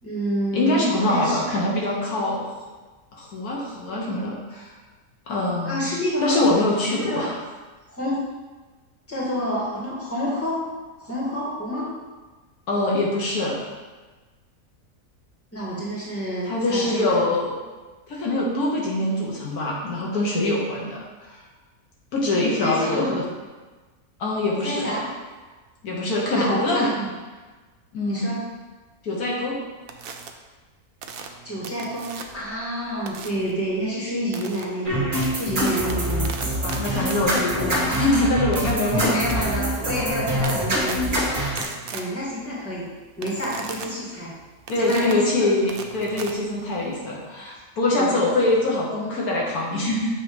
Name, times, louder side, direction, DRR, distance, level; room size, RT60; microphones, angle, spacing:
voice 1, 0.0-1.4 5.6-6.4 7.0-7.3 7.9-8.2 9.1-10.6 11.0-11.9 15.5-17.3 22.6-23.2 24.6-25.0 26.3-27.1 28.0-28.4 31.4-36.3 37.6-37.7 38.9-41.2 41.9-42.9 43.2-44.3 44.7-45.2 48.0-48.2, equal, 10° left, -7 dB, 1.8 m, -28 dB
voice 2, 0.5-2.4 3.1-4.7 5.3-5.9 6.2-7.3 12.7-13.6 16.5-17.5 18.1-21.0 21.3-21.4 22.1-23.2 24.2-25.0 25.8-26.9 27.9-28.4 29.0-29.6 36.6-39.4 44.7-50.2, left 2 dB, 75° left, -3 dB, 1.6 m, -24 dB
sound 1, 29.9-30.3 31.0-32.5 33.1-33.5 34.3-34.6 35.1-47.0, right 5 dB, 70° right, 0.5 m, -39 dB
sound 2, 34.9-41.6, equal, 35° right, 1.7 m, -25 dB
7.3 x 3.1 x 5.1 m, 1.3 s
omnidirectional pair, 1.6 m